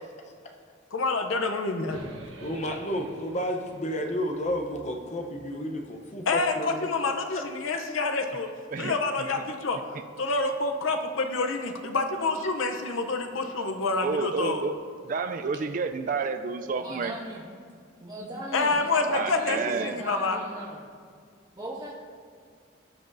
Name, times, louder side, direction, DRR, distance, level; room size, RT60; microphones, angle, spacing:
voice 1, 0.9-2.1 6.3-8.5 8.8-9.4 9.6-9.8 10.2-14.6 18.5-20.4, left 3 dB, 80° left, 5 dB, 0.7 m, -27 dB
sound 1, 1.9-6.1, right 1 dB, 85° right, 1.1 m, -48 dB
voice 2, 2.4-6.8 7.3-7.4, equal, 35° left, 3 dB, 0.7 m, -31 dB
voice 3, 14.0-14.8 15.0-17.1 19.1-20.0, right 4 dB, 40° right, 8 dB, 0.3 m, -30 dB
voice 4, 16.8-17.4 18.0-20.8 21.5-21.9, right 1 dB, 20° right, -6 dB, 1.5 m, -38 dB
16.0 x 6.0 x 2.6 m, 2.1 s
head